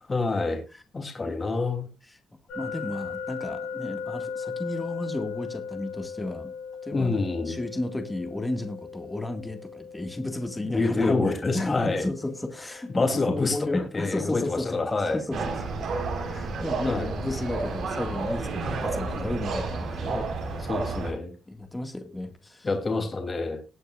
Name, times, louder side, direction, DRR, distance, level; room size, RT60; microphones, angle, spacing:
voice 1, 0.1-0.6 0.9-1.9 6.9-7.5 10.6-12.0 12.9-13.6 13.9-15.2 16.8-17.1 20.0-20.2 20.6-21.3 22.6-23.6, left 3 dB, 30° left, 4 dB, 3.2 m, -27 dB
sound 1, 2.5-15.4, left 6 dB, 90° left, 7.0 m, -39 dB
voice 2, 2.5-6.5 6.8-15.8 16.3-20.2 20.7-20.8 21.5-22.7, left 2 dB, 15° left, 6 dB, 2.0 m, -33 dB
sound 2, 15.3-21.1, right 3 dB, 70° right, 5.0 m, -31 dB
20.0 x 8.4 x 2.5 m, 0.29 s
cardioid pair, 90°, 0 cm